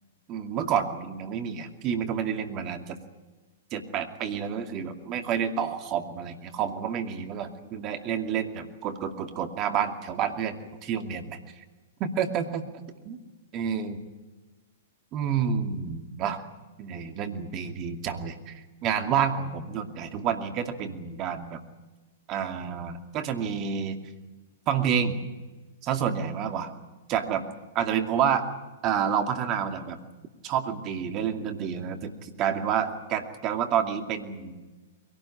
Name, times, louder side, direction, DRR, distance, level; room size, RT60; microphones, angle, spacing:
voice 1, 0.3-3.0 3.7-11.4 12.0-12.6 13.0-13.2 13.5-14.0 15.1-16.4 16.8-18.5 18.8-21.6 22.3-24.0 24.7-25.2 25.8-26.7 27.1-27.4 27.7-28.5 28.8-30.0 30.4-34.6, right 8 dB, 35° right, 6 dB, 2.4 m, -29 dB
22.5 x 18.0 x 10.0 m, 1.2 s
figure-of-eight pair, 110°, 0 cm